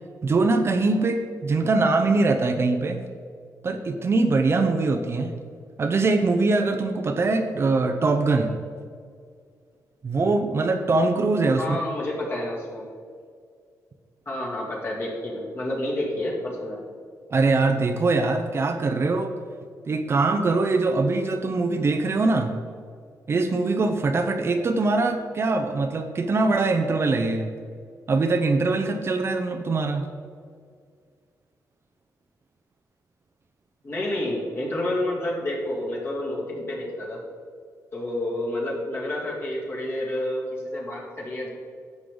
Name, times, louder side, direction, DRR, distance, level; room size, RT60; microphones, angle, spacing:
voice 1, 0.2-3.0 3.6-5.3 5.8-8.5 10.0-11.6 17.3-19.3 19.9-22.5 23.3-27.5 28.1-30.0, right 3 dB, 40° right, 6 dB, 0.7 m, -22 dB
voice 2, 11.6-12.9 14.3-16.8 33.8-37.2 37.9-41.5, left 1 dB, 35° left, -4 dB, 2.7 m, -29 dB
11.0 x 7.5 x 3.9 m, 2.1 s
cardioid pair, 115°, 7 cm